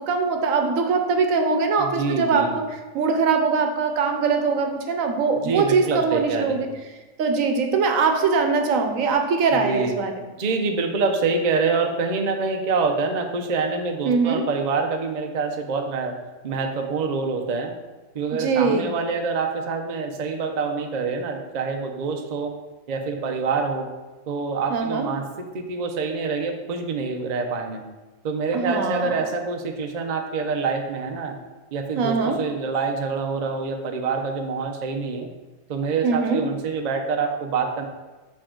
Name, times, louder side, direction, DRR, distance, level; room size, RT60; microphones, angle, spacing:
voice 1, 0.0-6.7 7.2-10.1 14.0-14.4 18.4-18.9 24.7-25.1 28.5-29.2 32.0-32.4 36.0-36.4, right 4 dB, 80° right, 5 dB, 1.1 m, -22 dB
voice 2, 1.8-2.5 5.4-6.7 9.5-10.0 10.4-16.2 16.4-17.7 18.1-22.5 22.9-23.9 24.3-25.2 25.5-27.8 28.2-31.4 31.7-35.3 35.7-37.9, right 4 dB, 45° right, 4 dB, 0.6 m, -26 dB
6.3 x 4.9 x 3.7 m, 1.2 s
omnidirectional pair, 1.4 m